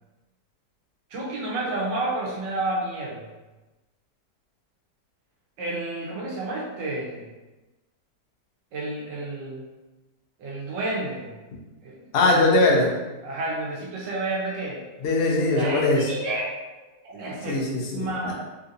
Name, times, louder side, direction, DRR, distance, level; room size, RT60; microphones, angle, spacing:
voice 1, 1.1-3.3 5.6-7.3 8.7-9.6 10.4-11.3 11.8-12.0 13.2-14.8 15.5-16.8 17.0-17.6 17.9-18.3, right 2 dB, 85° right, -4 dB, 1.5 m, -30 dB
voice 2, 12.1-12.9 15.0-16.1 17.5-18.3, left 2 dB, 75° left, -1 dB, 0.5 m, -21 dB
3.7 x 2.7 x 2.5 m, 1.1 s
omnidirectional pair, 1.9 m